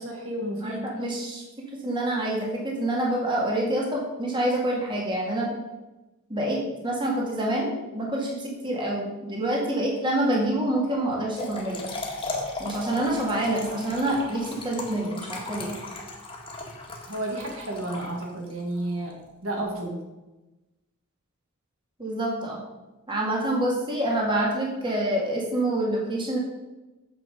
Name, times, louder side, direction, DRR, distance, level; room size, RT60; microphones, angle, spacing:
voice 1, 0.0-0.9 17.1-19.1 19.4-20.0, right 1 dB, 70° right, -1 dB, 2.4 m, -31 dB
voice 2, 0.6-1.4 1.8-5.5 6.3-6.6 6.8-11.8 12.6-15.7 22.0-22.6 23.1-26.4, right 1 dB, 20° right, -3 dB, 2.2 m, -27 dB
Trickle dribble / Fill (with liquid), 11.1-18.6, left 2 dB, 25° left, 1.9 m, -36 dB
9.2 x 7.3 x 5.3 m, 1.1 s
head